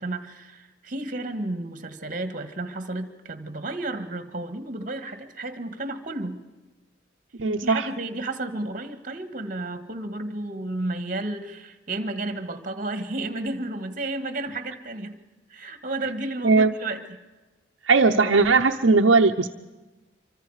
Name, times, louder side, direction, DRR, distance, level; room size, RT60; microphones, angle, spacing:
voice 1, 0.0-6.4 7.6-15.1 15.5-17.2, right 2 dB, 45° right, 9 dB, 1.7 m, -32 dB
voice 2, 7.4-7.9 16.4-16.7 17.9-19.5, right 4 dB, 85° right, -1 dB, 0.8 m, -18 dB
26.0 x 25.0 x 4.9 m, 1.1 s
head